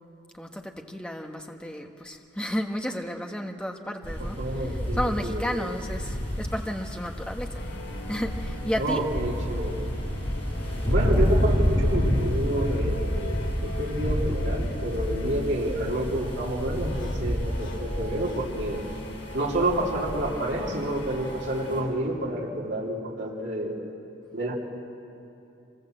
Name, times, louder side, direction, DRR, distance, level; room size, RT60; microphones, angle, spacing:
voice 1, 0.3-7.6 8.1-9.0, equal, 5° left, 3 dB, 1.2 m, -32 dB
sound 1, 4.0-21.8, equal, 30° left, 5.8 m, -29 dB
voice 2, 4.2-5.7 8.8-9.9 10.9-18.8 19.3-23.8 24.3-24.5, right 1 dB, 70° right, -4 dB, 3.0 m, -29 dB
sound 2, 7.5-21.9, left 1 dB, 70° left, 2.6 m, -42 dB
25.0 x 21.0 x 7.8 m, 2.8 s
head